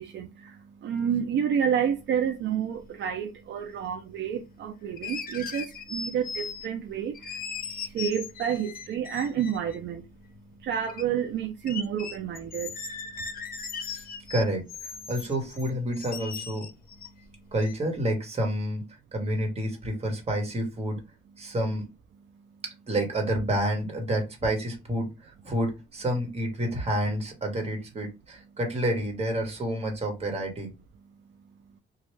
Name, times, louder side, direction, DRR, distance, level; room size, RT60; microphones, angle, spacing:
voice 1, 0.0-10.0 10.6-12.7, right 8 dB, 65° right, 0.5 m, -30 dB
sound 1, 2.8-2.9 4.9-6.9 7.1-9.8 10.4-11.0 11.3-11.4 11.7-17.2 17.6-17.7, left 5 dB, 50° left, 0.7 m, -38 dB
voice 2, 13.9-16.7 17.5-18.8 19.1-21.0 21.4-21.9 22.9-30.7, right 1 dB, 30° right, 1.4 m, -29 dB
3.0 x 2.3 x 3.2 m
cardioid pair, 90°, 20 cm